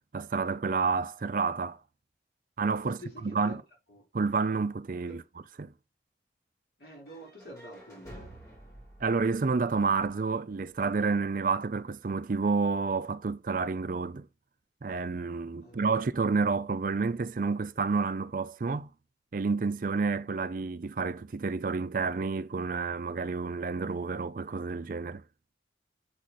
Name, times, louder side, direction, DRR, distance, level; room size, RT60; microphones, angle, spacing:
voice 1, 0.1-1.8 2.6-3.6 4.1-5.2 5.6-5.7 9.0-14.3 14.8-18.9 19.3-25.2, right 4 dB, 45° right, 0.4 m, -29 dB
voice 2, 2.8-3.6 3.9-4.1 5.1-5.2 6.8-8.3 15.6-15.8 20.2-20.3, equal, 60° left, 3.9 m, -48 dB
sound 1, 7.0-11.0, right 1 dB, 15° left, 3.6 m, -51 dB
7.5 x 4.9 x 4.2 m
head